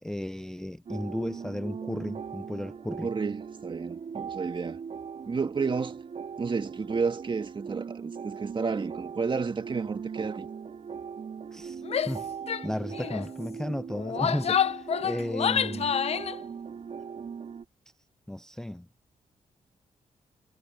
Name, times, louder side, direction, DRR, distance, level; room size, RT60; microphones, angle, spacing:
voice 1, 0.0-3.1 11.5-12.3 12.6-15.9 18.3-18.9, left 1 dB, 5° left, 0.5 m, -34 dB
sound 1, 0.9-17.7, right 6 dB, 55° right, 3.8 m, -39 dB
voice 2, 3.0-4.8 5.3-6.0 6.4-10.5, right 5 dB, 40° right, 1.9 m, -31 dB
Female speech woman speaking / Yell, 11.9-12.2 12.5-12.7 12.9-13.3 13.9-16.4, left 8 dB, 50° left, 0.7 m, -28 dB
cardioid pair, 75°, 13 cm